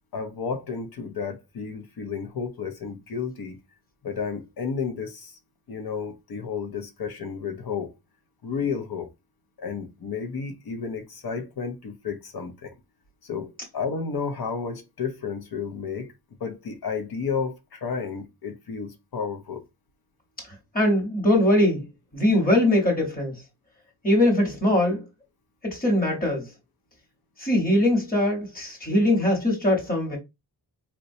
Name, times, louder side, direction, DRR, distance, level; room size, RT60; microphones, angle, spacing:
voice 1, 0.1-3.6 4.0-5.4 5.7-7.9 8.4-9.1 9.6-12.7 13.2-16.1 16.4-19.6, left 5 dB, 65° left, 0.7 m, -32 dB
voice 2, 20.7-21.8 22.1-23.3 24.0-25.0 25.6-26.5 27.4-30.2, left 1 dB, 20° left, 1.1 m, -21 dB
3.9 x 2.2 x 2.6 m
wide cardioid pair, 145°, 41 cm